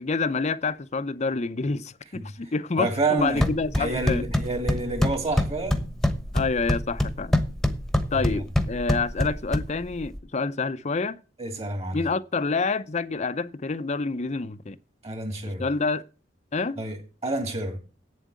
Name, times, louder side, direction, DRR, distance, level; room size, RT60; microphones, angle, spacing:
voice 1, 0.0-4.2 6.3-7.3 8.1-11.2 11.9-14.8 15.6-16.0 16.5-16.8, left 4 dB, 40° left, 0.6 m, -28 dB
voice 2, 2.8-3.5 3.8-5.9 8.1-8.4 11.4-12.0 15.0-15.7 16.8-17.0 17.2-17.8, right 2 dB, 35° right, 2.5 m, -28 dB
sound 1, 3.2-10.2, left 1 dB, ahead, 1.1 m, -26 dB
8.5 x 7.5 x 8.2 m
head